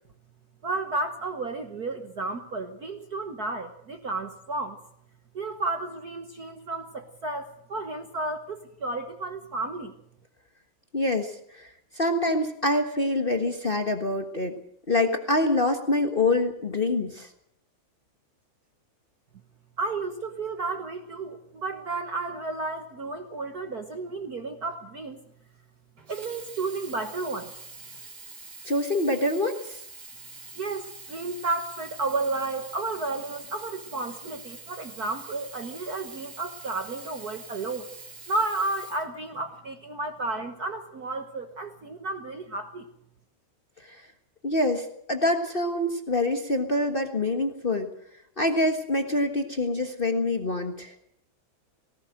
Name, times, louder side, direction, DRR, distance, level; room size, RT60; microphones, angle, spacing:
voice 1, 0.6-4.8 5.3-9.9 19.8-25.2 26.1-27.5 30.6-37.9 38.3-42.9, right 3 dB, 55° right, 6 dB, 1.0 m, -32 dB
voice 2, 10.9-11.7 11.9-14.6 14.9-17.3 28.6-29.8 43.9-44.0 44.4-47.9 48.4-50.9, left 2 dB, 60° left, 5 dB, 0.5 m, -25 dB
Sink (filling or washing), 26.0-39.7 40.5-40.6, right 3 dB, 30° right, 3.6 m, -45 dB
19.0 x 18.0 x 7.8 m, 0.70 s
omnidirectional pair, 3.5 m